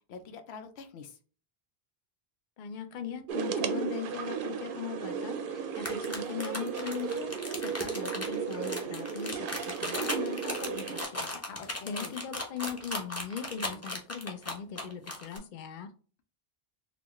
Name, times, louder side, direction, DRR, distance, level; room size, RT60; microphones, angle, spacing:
voice 1, 0.1-1.2 11.5-12.1, left 5 dB, 90° left, 7 dB, 0.9 m, -45 dB
voice 2, 2.6-11.4 11.9-15.9, left 7 dB, 55° left, 8 dB, 0.7 m, -40 dB
sound 1, 3.3-11.0, right 6 dB, 65° right, 0.7 m, -35 dB
sound 2, 5.7-15.4, left 1 dB, 15° left, 0.7 m, -37 dB
4.2 x 2.3 x 3.0 m, 0.39 s
omnidirectional pair, 1.1 m